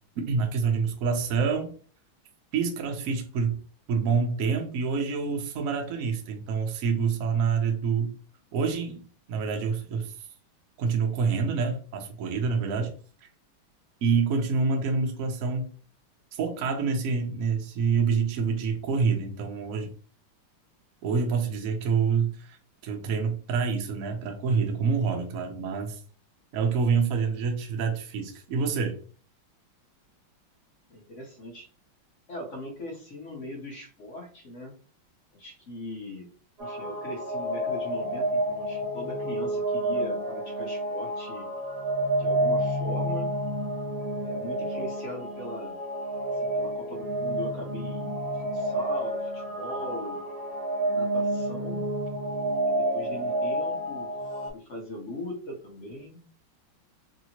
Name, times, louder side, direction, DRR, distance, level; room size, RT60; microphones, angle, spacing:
voice 1, 0.2-1.7 2.5-3.6 3.9-8.1 8.5-10.1 10.8-12.9 14.0-15.7 16.3-19.9 21.0-22.6 22.8-26.0 26.5-29.0, right 5 dB, 90° right, 0.7 m, -27 dB
voice 2, 30.9-31.7 32.3-34.8 35.3-36.3 36.6-41.5 42.2-43.3 44.2-45.8 46.3-50.2 50.9-51.8 52.6-54.2 54.5-56.2, left 1 dB, 60° left, 0.8 m, -40 dB
sound 1, 36.6-54.5, right 1 dB, 40° right, 0.5 m, -29 dB
3.2 x 2.8 x 2.8 m
omnidirectional pair, 2.3 m